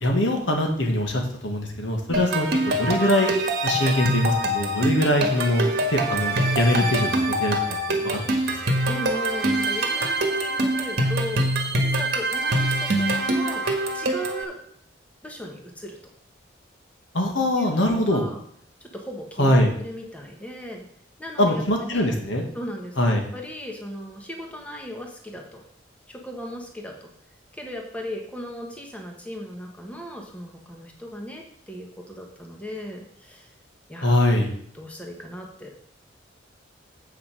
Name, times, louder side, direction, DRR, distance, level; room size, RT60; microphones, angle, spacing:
voice 1, 0.0-3.3 3.6-7.6 7.9-8.2 8.5-8.8 17.1-18.2 19.4-19.7 21.4-22.5 23.0-23.2 34.0-34.5, left 1 dB, 80° left, 2 dB, 1.8 m, -22 dB
sound 1, 2.1-14.4, right 1 dB, 55° right, 1.4 m, -24 dB
voice 2, 8.8-13.6 13.9-14.6 15.2-16.0 17.6-17.7 18.1-18.4 18.8-20.8 21.2-22.1 22.5-25.6 26.1-27.1 27.5-33.5 33.9-34.2 34.7-35.7, equal, 5° left, 1 dB, 1.2 m, -37 dB
8.0 x 6.0 x 6.2 m, 0.65 s
head